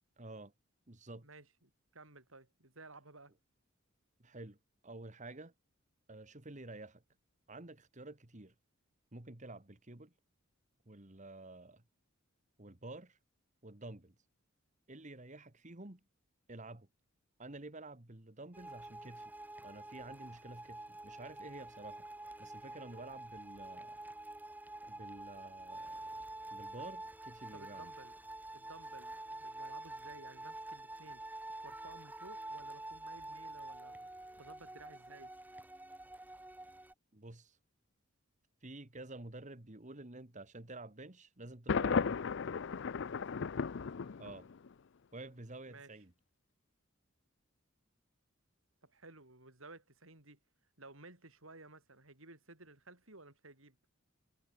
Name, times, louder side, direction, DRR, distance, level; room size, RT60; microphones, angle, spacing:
voice 1, 0.2-0.5 0.9-1.3 4.2-4.6 4.8-5.5 6.1-7.0 7.5-8.5 9.1-10.1 10.9-11.8 12.6-13.2 13.6-14.1 14.9-16.0 16.5-16.9 17.4-19.3 19.6-22.1 22.4-24.0 24.9-26.0 26.5-27.9 37.1-37.6 38.6-42.2 44.2-44.5 45.1-46.1, right 2 dB, 35° right, 1.9 m, -50 dB
voice 2, 1.2-3.3 27.5-28.2 28.5-31.2 31.6-35.4 45.7-46.0 48.8-50.4 50.8-53.8, right 2 dB, 75° right, 6.7 m, -56 dB
sound 1, 18.5-36.9, right 2 dB, 10° right, 1.8 m, -48 dB
Thunder, 41.7-44.7, left 5 dB, 60° left, 0.5 m, -35 dB
head